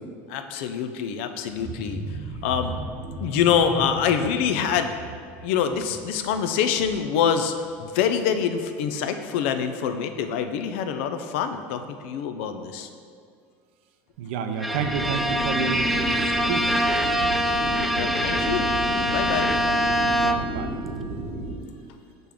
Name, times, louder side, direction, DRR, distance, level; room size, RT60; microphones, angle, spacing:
voice 1, 0.3-2.0 2.4-2.8 3.2-4.9 5.4-12.9 18.0-18.7 19.1-19.5, left 7 dB, 80° left, 8 dB, 0.5 m, -25 dB
sound 1, 1.5-7.3 7.6-7.9 8.2-8.3, right 2 dB, 40° right, 0.8 m, -37 dB
voice 2, 14.2-16.7 20.0-20.7, right 5 dB, 85° right, 7 dB, 0.6 m, -30 dB
Bowed string instrument, 14.6-20.7, equal, ahead, 0.3 m, -24 dB
sound 2, 14.7-21.5, right 2 dB, 70° right, 1.1 m, -32 dB
6.7 x 6.0 x 3.6 m, 2.2 s
supercardioid pair, 125°, 6 cm